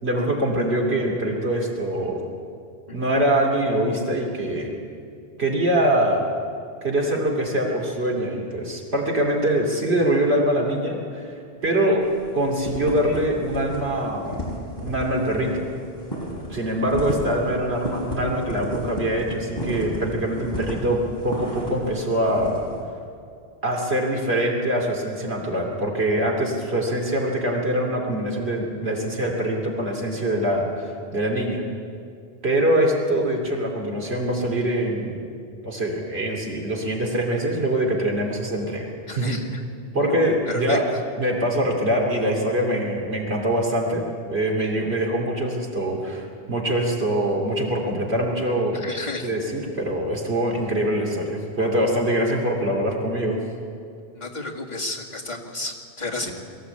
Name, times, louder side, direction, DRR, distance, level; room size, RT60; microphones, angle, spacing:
voice 1, 0.0-2.2 2.9-4.7 5.4-6.2 6.8-11.3 11.6-12.0 12.3-14.5 14.8-15.7 16.5-22.6 23.6-31.6 32.4-35.2 35.6-39.4 39.9-40.8 41.2-48.9 49.2-53.4 56.2-56.3, right 1 dB, 80° right, -1 dB, 3.1 m, -24 dB
sound 1, 12.0-12.3 12.5-13.2 13.4-13.8 14.0-21.9 22.2-22.6, equal, 20° left, 5.0 m, -32 dB
voice 2, 39.1-39.5 40.0-40.8 48.7-49.3 54.1-56.3, left 2 dB, 45° left, -2 dB, 2.2 m, -31 dB
22.5 x 14.5 x 8.4 m, 2.3 s
omnidirectional pair, 1.1 m